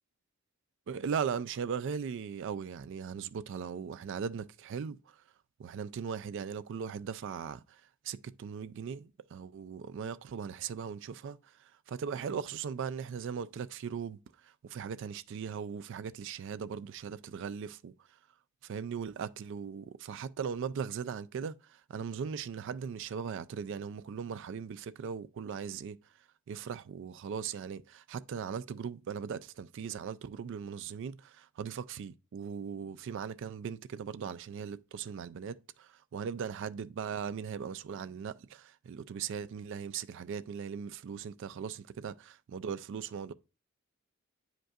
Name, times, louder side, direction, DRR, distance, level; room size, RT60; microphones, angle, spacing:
voice 1, 0.9-5.0 5.6-17.9 18.6-26.0 26.5-43.3, right 7 dB, 55° right, 0.3 m, -39 dB
8.8 x 5.2 x 2.4 m
head